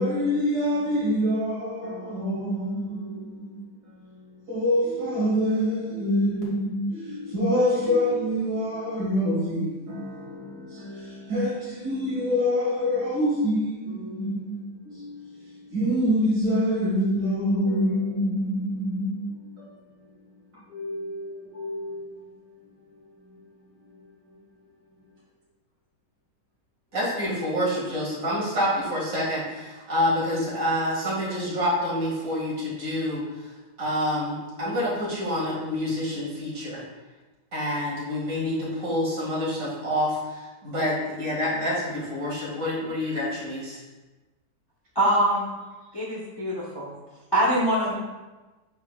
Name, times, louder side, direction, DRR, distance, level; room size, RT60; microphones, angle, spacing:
voice 1, 0.0-19.9 20.5-22.1 22.4-23.5 23.8-24.4, equal, 70° right, -6 dB, 2.7 m, -27 dB
voice 2, 26.9-36.8 37.5-43.8, left 1 dB, 50° right, -7 dB, 2.5 m, -27 dB
voice 3, 44.9-45.5 45.9-46.9 47.3-47.9, right 1 dB, 20° left, -4 dB, 0.6 m, -23 dB
8.1 x 5.6 x 2.4 m, 1.2 s
omnidirectional pair, 1.8 m